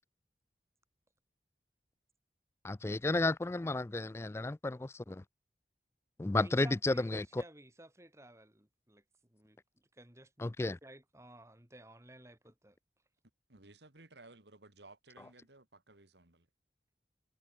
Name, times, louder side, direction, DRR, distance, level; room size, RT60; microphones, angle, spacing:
voice 1, 2.6-5.2 6.2-7.4 10.4-10.8, left 2 dB, 15° left, 0.3 m, -32 dB
voice 2, 6.3-9.0 9.3-9.6 9.9-10.5 10.8-12.8, right 1 dB, 15° right, 3.1 m, -55 dB
voice 3, 13.5-16.5, right 2 dB, 75° right, 2.8 m, -58 dB
head